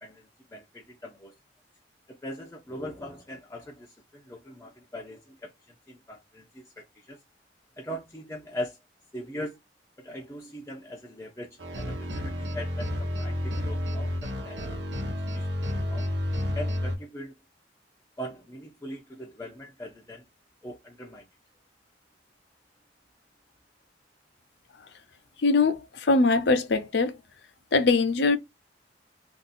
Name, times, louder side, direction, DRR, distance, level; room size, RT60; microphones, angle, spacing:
voice 1, 0.0-1.3 2.1-7.2 7.8-8.8 9.1-9.6 10.0-14.7 15.3-16.1 16.5-17.3 18.2-20.2 20.6-21.2, equal, 15° left, 0.6 m, -40 dB
sound 1, 11.6-17.0, left 1 dB, 80° right, 1.0 m, -30 dB
voice 2, 25.4-27.2 27.7-28.4, left 3 dB, 65° left, 0.6 m, -22 dB
2.6 x 2.6 x 3.9 m
head